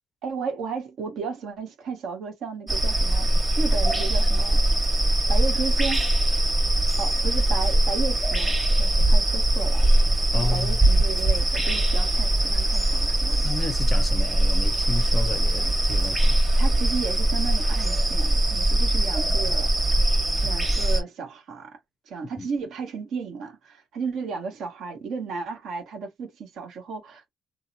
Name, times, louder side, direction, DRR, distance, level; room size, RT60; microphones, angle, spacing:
voice 1, 0.2-3.3 3.6-4.6 5.3-6.1 7.0-9.9 10.3-13.5 16.6-20.0 20.4-21.8 22.1-27.3, right 5 dB, 65° right, 1.1 m, -34 dB
sound 1, 2.7-21.0, right 1 dB, 10° right, 1.0 m, -21 dB
voice 2, 10.3-10.8 13.4-16.4 22.4-22.5, left 3 dB, 30° left, 0.4 m, -32 dB
2.7 x 2.0 x 2.6 m
cardioid pair, 110°, 0 cm